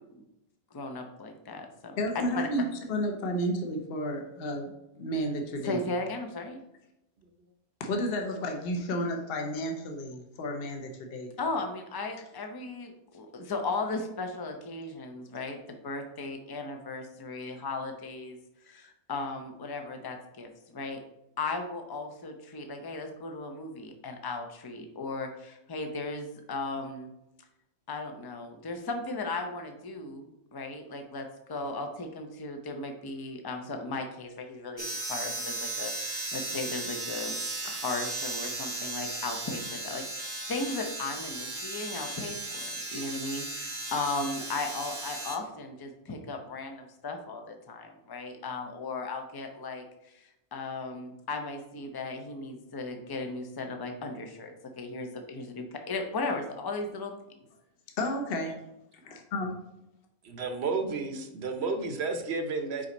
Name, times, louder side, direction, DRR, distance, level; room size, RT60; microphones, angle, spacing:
voice 1, 0.7-2.0 2.3-2.5 5.6-6.6 11.4-18.4 18.6-21.0 21.4-27.1 27.9-37.3 37.6-57.1, left 3 dB, 30° left, 4 dB, 0.4 m, -36 dB
voice 2, 2.0-4.7 5.0-5.8 7.8-11.3 58.0-58.5 59.0-59.5, equal, 45° left, 3 dB, 1.0 m, -32 dB
sound 1, 34.8-45.4, right 2 dB, 20° right, 0.8 m, -36 dB
voice 3, 60.3-62.9, right 4 dB, 55° right, 5 dB, 0.9 m, -31 dB
5.1 x 4.9 x 4.1 m, 0.86 s
omnidirectional pair, 1.5 m